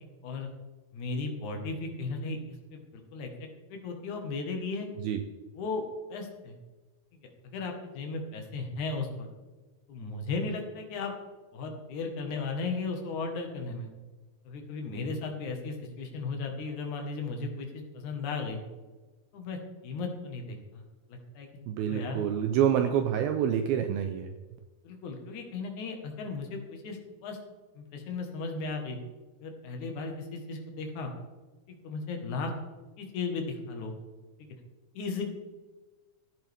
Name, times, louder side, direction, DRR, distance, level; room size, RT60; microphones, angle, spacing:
voice 1, 0.9-2.4 2.7-3.3 3.7-4.9 5.5-5.8 6.1-6.6 7.5-9.3 9.9-11.1 11.5-13.9 14.5-18.6 19.3-19.6 19.8-20.8 21.1-21.5 21.9-22.2 24.8-27.4 27.8-29.0 29.4-31.1 31.7-32.5 33.0-33.9 34.4-34.5 34.9-35.2, left 4 dB, 60° left, 3 dB, 2.4 m, -35 dB
voice 2, 21.7-24.3, right 9 dB, 85° right, 7 dB, 2.2 m, -27 dB
14.0 x 10.5 x 3.5 m, 1.2 s
omnidirectional pair, 4.8 m